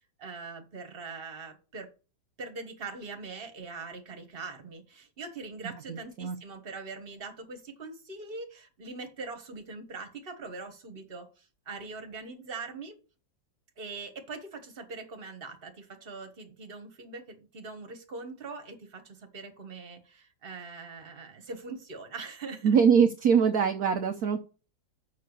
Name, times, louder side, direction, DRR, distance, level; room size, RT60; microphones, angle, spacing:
voice 1, 0.2-1.9 2.4-13.0 13.8-22.8, right 4 dB, 30° right, 1.5 m, -42 dB
voice 2, 5.9-6.4 22.6-24.4, right 7 dB, 60° right, 1.0 m, -23 dB
6.8 x 5.7 x 6.6 m
omnidirectional pair, 2.2 m